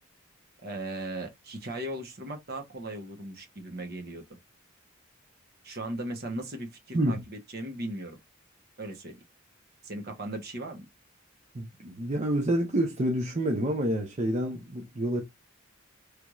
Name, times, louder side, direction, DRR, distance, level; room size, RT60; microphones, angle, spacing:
voice 1, 0.6-4.2 5.6-8.2 8.8-9.2 9.8-10.9, right 1 dB, 50° right, 0.9 m, -37 dB
voice 2, 11.5-15.2, right 1 dB, 35° right, 0.6 m, -28 dB
3.4 x 3.0 x 2.3 m
head